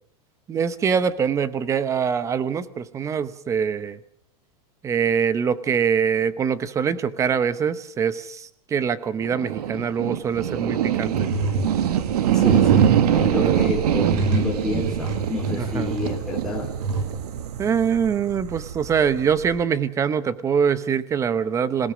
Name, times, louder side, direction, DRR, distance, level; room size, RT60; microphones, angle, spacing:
voice 1, 0.5-4.0 4.8-11.1 13.4-13.6 15.6-16.0 17.6-21.9, right 7 dB, 15° right, 15 dB, 0.9 m, -24 dB
sound 1, 9.2-19.6, right 10 dB, 80° right, 1.8 m, -24 dB
sound 2, 10.7-10.8 11.1-17.0, right 3 dB, 50° right, 6.0 m, -27 dB
voice 2, 12.3-16.7, left 2 dB, ahead, -4 dB, 4.0 m, -29 dB
26.5 x 17.5 x 6.3 m, 0.62 s
supercardioid pair, 160°, 20 cm